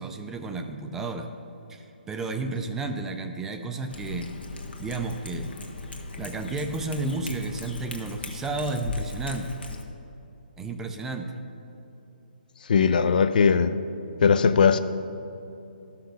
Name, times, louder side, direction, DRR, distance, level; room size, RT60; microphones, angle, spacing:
voice 1, 0.0-1.3 1.7-4.4 4.8-5.5 6.2-9.5 10.6-11.3 12.8-13.1, right 3 dB, 5° right, 5 dB, 0.4 m, -32 dB
Cat, 3.9-9.8, left 3 dB, 80° left, 1.4 m, -38 dB
voice 2, 12.7-13.8 14.2-14.8, left 6 dB, 55° left, 12 dB, 0.5 m, -19 dB
12.5 x 5.9 x 6.4 m, 2.9 s
hypercardioid pair, 160°, 5 cm